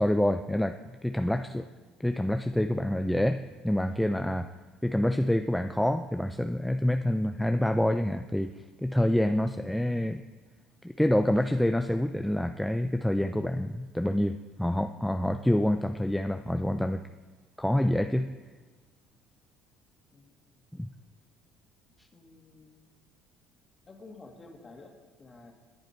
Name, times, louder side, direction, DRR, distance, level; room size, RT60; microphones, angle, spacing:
voice 1, 0.0-1.7 2.0-4.5 4.8-8.5 8.8-10.2 10.8-17.0 17.6-18.3 20.7-20.9, left 1 dB, 5° left, 7 dB, 0.5 m, -27 dB
voice 2, 22.1-22.9 23.9-25.5, left 3 dB, 25° left, 2 dB, 2.2 m, -51 dB
20.0 x 7.9 x 4.5 m, 1.4 s
supercardioid pair, 100°, 0 cm